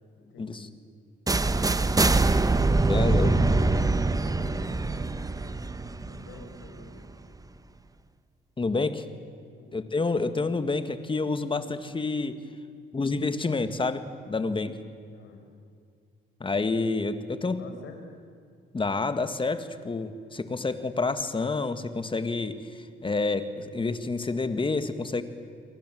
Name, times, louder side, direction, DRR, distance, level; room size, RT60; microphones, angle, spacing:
voice 1, 0.2-0.7 3.1-4.7 6.1-7.1 9.5-9.8 15.1-15.4 17.5-18.1, left 4 dB, 75° left, 5 dB, 5.4 m, -47 dB
sound 1, 1.3-7.1, right 3 dB, 20° right, 1.1 m, -24 dB
voice 2, 2.9-3.3 8.6-9.1 9.7-12.4 12.9-14.8 16.4-17.7 18.7-25.2, left 3 dB, 25° left, 10 dB, 1.9 m, -28 dB
30.0 x 23.0 x 7.8 m, 2.3 s
cardioid pair, 90°, 20 cm